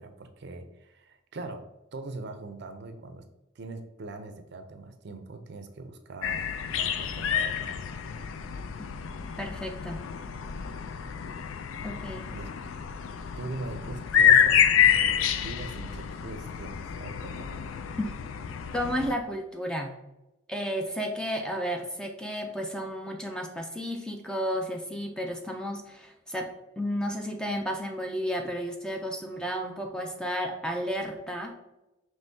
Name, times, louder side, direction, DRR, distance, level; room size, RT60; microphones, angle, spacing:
voice 1, 0.0-3.2 3.6-7.8 12.3-12.5 13.4-17.6, right 3 dB, 55° right, 7 dB, 0.5 m, -41 dB
sound 1, 6.2-19.1, left 8 dB, 80° left, 0.3 m, -27 dB
voice 2, 9.4-10.0 11.8-12.3 18.0-18.1 18.7-19.9 20.5-26.5 26.8-31.5, equal, 5° left, 2 dB, 0.4 m, -32 dB
5.4 x 3.1 x 2.6 m, 0.95 s
head